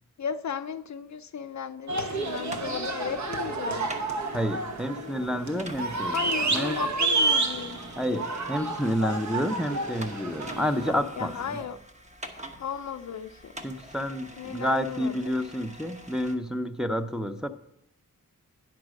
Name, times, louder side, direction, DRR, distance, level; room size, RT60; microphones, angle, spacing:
voice 1, 0.2-3.9 6.1-7.8 11.2-11.8 12.6-13.6 14.4-15.4, left 7 dB, 55° left, 11 dB, 0.5 m, -35 dB
sound 1, 1.9-10.9, right 3 dB, 55° right, 1.1 m, -30 dB
sound 2, 2.1-16.3, equal, 20° right, 1.0 m, -45 dB
voice 2, 4.3-6.2 6.5-6.8 8.0-11.3 13.6-17.5, equal, ahead, 5 dB, 0.6 m, -29 dB
9.6 x 5.9 x 6.4 m, 0.77 s
wide cardioid pair, 80°, 33 cm